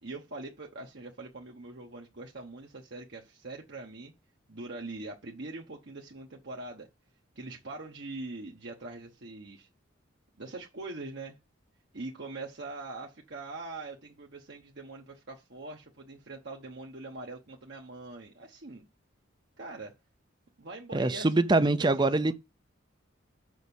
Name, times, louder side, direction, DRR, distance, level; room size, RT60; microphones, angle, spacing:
voice 1, 0.0-4.1 4.5-6.9 7.4-9.7 10.4-11.4 11.9-18.8 19.6-19.9 20.6-22.3, right 2 dB, 55° right, 1.1 m, -43 dB
voice 2, 20.9-22.3, right 2 dB, 20° right, 0.5 m, -24 dB
6.4 x 5.6 x 7.0 m
head